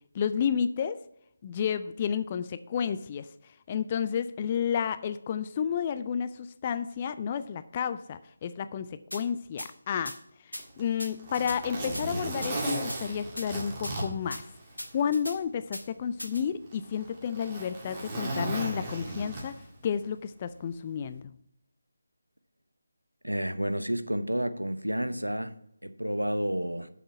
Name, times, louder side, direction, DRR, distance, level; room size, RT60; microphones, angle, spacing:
voice 1, 0.1-1.0 1.4-3.3 3.7-8.9 9.1-10.2 10.5-14.4 14.9-19.5 19.8-21.3, left 7 dB, 25° left, 0.3 m, -31 dB
sound 1, 9.1-9.2 9.6-9.7 10.1-10.2 10.5-10.6 11.0-11.6 11.9-12.1 12.4-13.0 13.4-13.5 13.8-13.9 14.3-14.4 14.8-15.4 15.7-15.8 16.2-16.4, equal, 90° left, 1.7 m, -38 dB
Zipper (clothing), 10.6-15.1 15.4-15.5 16.3-19.8 21.0-21.2, right 1 dB, 20° right, 2.0 m, -36 dB
voice 2, 23.2-25.5 25.8-26.9, equal, 90° right, 0.9 m, -30 dB
7.5 x 7.1 x 5.8 m
figure-of-eight pair, 155°, 0 cm